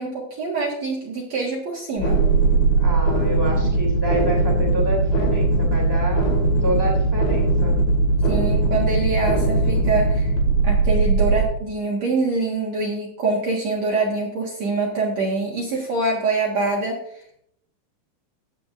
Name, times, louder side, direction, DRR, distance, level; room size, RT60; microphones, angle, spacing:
voice 1, 0.0-2.2 8.2-10.3 10.6-17.2, right 3 dB, 75° right, -4 dB, 1.5 m, -25 dB
sound 1, 2.0-11.4, right 3 dB, 60° left, 3.3 m, -19 dB
voice 2, 2.8-7.7, right 1 dB, 25° right, -2 dB, 0.5 m, -28 dB
15.5 x 8.8 x 2.5 m, 0.72 s
omnidirectional pair, 5.6 m